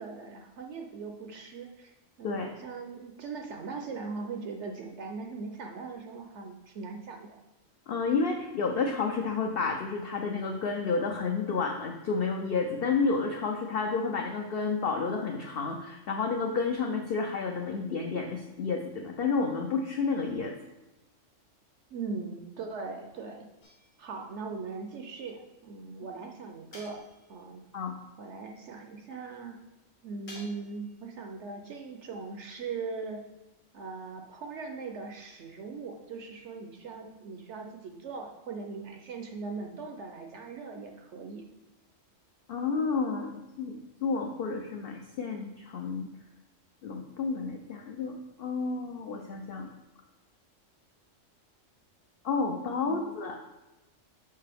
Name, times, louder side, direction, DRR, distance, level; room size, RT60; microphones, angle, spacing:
voice 1, 0.0-1.9 2.2-7.4 21.9-23.5 24.0-27.0 27.3-27.6 28.2-29.6 30.0-33.2 33.7-41.4 52.9-53.1, right 4 dB, 65° right, 3 dB, 0.9 m, -40 dB
voice 2, 7.9-20.5 27.7-27.9 42.5-46.1 46.8-49.7 52.2-53.4, left 4 dB, 55° left, 3 dB, 0.7 m, -30 dB
sound 1, 23.6-24.3 26.7-27.5 30.3-30.9, left 1 dB, 70° left, 1.7 m, -51 dB
6.6 x 5.4 x 3.5 m, 1.0 s
omnidirectional pair, 1.4 m